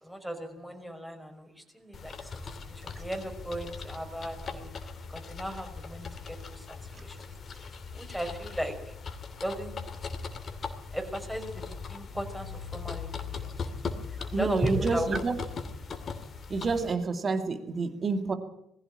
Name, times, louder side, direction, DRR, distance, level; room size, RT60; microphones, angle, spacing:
voice 1, 0.0-2.3 2.7-4.7 5.1-7.2 7.9-8.9 9.4-9.7 10.9-13.5 14.3-15.1, equal, ahead, 4 dB, 5.6 m, -36 dB
sound 1, 1.9-16.9, left 5 dB, 45° left, 2.5 m, -39 dB
voice 2, 14.3-15.4 16.5-18.3, right 4 dB, 40° right, 8 dB, 2.4 m, -28 dB
21.0 x 15.5 x 8.8 m, 0.80 s
hypercardioid pair, 50°, 0 cm